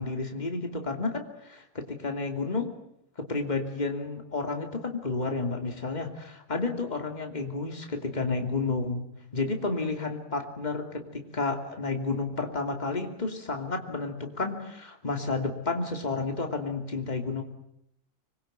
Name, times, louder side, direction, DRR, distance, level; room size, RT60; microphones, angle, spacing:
voice 1, 0.0-2.7 3.2-9.1 9.3-17.4, left 3 dB, 30° left, 4 dB, 2.9 m, -31 dB
26.0 x 22.0 x 9.2 m, 0.79 s
omnidirectional pair, 1.4 m